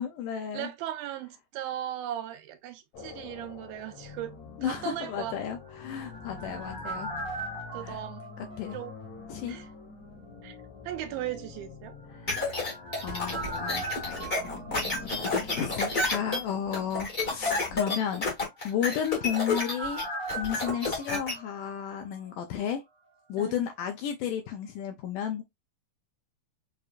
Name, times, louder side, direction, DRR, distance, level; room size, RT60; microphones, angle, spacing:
voice 1, 0.0-0.7 4.6-7.1 7.8-8.0 8.6-8.8 9.3-9.6 12.1-12.7 13.0-18.2 18.6-20.0 20.3-22.8 23.3-25.4, left 9 dB, 80° left, 1.9 m, -33 dB
voice 2, 0.5-5.4 7.7-8.2 8.7-8.9 9.5-9.7 10.4-10.6 10.9-12.0 23.4-23.6, right 12 dB, 85° right, 2.6 m, -37 dB
sound 1, 2.9-17.9, left 5 dB, 60° left, 2.0 m, -46 dB
sound 2, 5.5-9.4 9.6-9.7 12.1-16.2 18.5-22.3 22.6-22.7, right 2 dB, 15° right, 0.8 m, -40 dB
sound 3, 12.3-21.3, left 3 dB, 45° left, 0.7 m, -30 dB
6.6 x 2.6 x 2.3 m
omnidirectional pair, 4.3 m